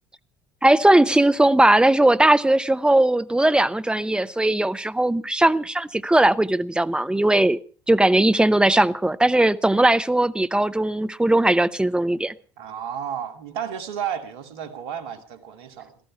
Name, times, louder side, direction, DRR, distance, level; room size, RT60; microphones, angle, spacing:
voice 1, 0.6-7.6 7.9-12.3, right 1 dB, 5° right, 0.9 m, -19 dB
voice 2, 12.6-16.0, right 8 dB, 65° right, 2.5 m, -32 dB
18.0 x 13.5 x 5.7 m
figure-of-eight pair, 65°, 14 cm